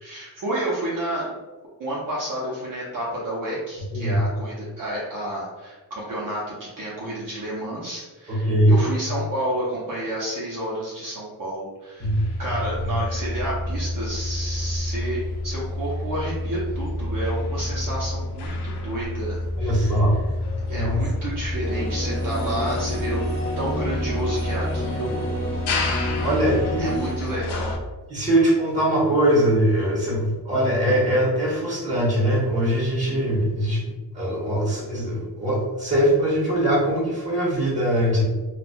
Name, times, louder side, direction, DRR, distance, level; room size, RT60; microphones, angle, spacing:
voice 1, 0.0-1.3 1.8-20.0 20.7-23.2 23.6-25.3 26.8-27.7, right 1 dB, 55° right, -6 dB, 0.7 m, -30 dB
voice 2, 8.3-8.8 12.0-12.3 19.6-20.2 20.7-21.1 26.2-26.9 28.1-33.8 34.1-38.2, right 1 dB, 20° right, -5 dB, 1.2 m, -21 dB
sound 1, 12.0-27.8, left 1 dB, 80° left, 0.6 m, -29 dB
sound 2, 21.6-27.1, equal, 30° left, 0.8 m, -31 dB
4.2 x 2.3 x 2.2 m, 1.2 s
wide cardioid pair, 175°, 39 cm